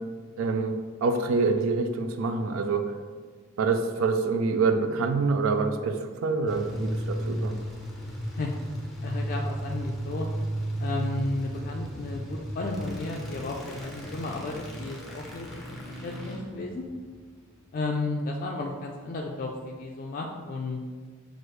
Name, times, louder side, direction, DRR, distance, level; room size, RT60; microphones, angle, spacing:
voice 1, 0.4-2.9 3.6-7.6, right 4 dB, 80° right, 8 dB, 0.4 m, -26 dB
sound 1, 6.5-17.6, right 1 dB, ahead, 0.7 m, -34 dB
voice 2, 9.0-10.2 10.8-15.5 16.0-16.8 17.7-20.8, left 3 dB, 45° left, 0 dB, 0.3 m, -33 dB
6.2 x 2.5 x 3.1 m, 1.6 s
head